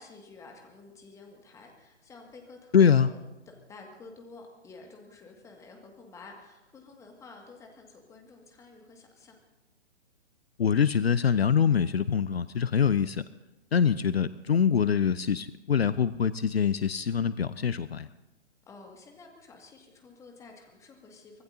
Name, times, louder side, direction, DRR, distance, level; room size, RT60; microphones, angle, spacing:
voice 1, 0.0-3.2 3.5-9.4 18.7-21.4, left 3 dB, 10° left, 2 dB, 2.0 m, -50 dB
voice 2, 2.7-3.1 10.6-13.2 13.7-18.1, left 7 dB, 65° left, 16 dB, 0.7 m, -24 dB
24.5 x 19.0 x 2.8 m, 1.0 s
figure-of-eight pair, 125°, 34 cm